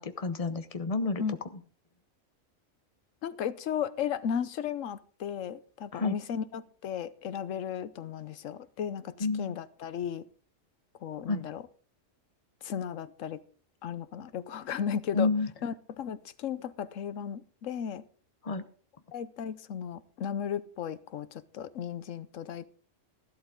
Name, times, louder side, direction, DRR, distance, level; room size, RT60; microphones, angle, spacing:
voice 1, 0.0-1.2 5.9-6.2 9.2-9.6 11.3-11.4 15.1-15.5 18.4-18.6, left 3 dB, 30° left, 10 dB, 1.0 m, -29 dB
voice 2, 3.2-10.2 11.0-11.6 12.6-13.4 13.8-15.3 15.6-18.0 19.1-22.7, left 8 dB, 80° left, 15 dB, 1.1 m, -35 dB
13.5 x 12.0 x 3.7 m, 0.43 s
omnidirectional pair, 1.3 m